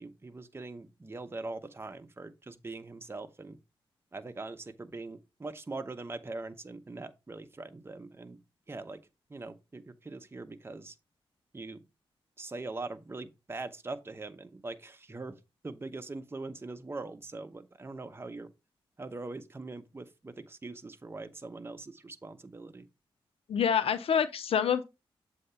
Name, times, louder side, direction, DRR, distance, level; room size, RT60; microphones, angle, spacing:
voice 1, 0.0-3.6 4.1-8.4 8.7-9.0 9.3-11.0 11.5-11.8 12.4-15.3 15.6-18.5 19.0-22.9, right 3 dB, 25° right, 0.8 m, -42 dB
voice 2, 23.5-24.8, left 8 dB, 85° left, 0.5 m, -27 dB
7.7 x 2.8 x 5.5 m
cardioid pair, 80°, 10 cm